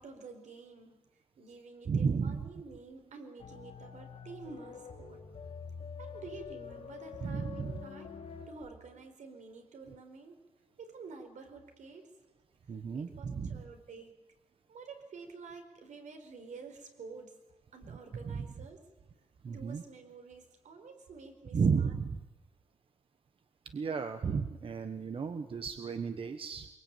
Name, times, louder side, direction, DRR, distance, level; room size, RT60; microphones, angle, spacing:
voice 1, 0.0-5.2 6.0-8.1 8.5-10.4 10.8-12.1 12.9-14.2 14.7-17.4 17.7-18.9 19.5-21.9, right 4 dB, 80° right, 5 dB, 4.7 m, -49 dB
voice 2, 1.9-2.4 7.2-7.8 12.7-13.6 18.2-18.4 19.4-19.8 21.5-22.2 23.7-26.7, right 5 dB, 45° right, 8 dB, 1.2 m, -33 dB
sound 1, 3.4-8.5, left 6 dB, 55° left, 3.8 m, -46 dB
24.0 x 22.5 x 9.1 m, 1.1 s
wide cardioid pair, 170°, 12 cm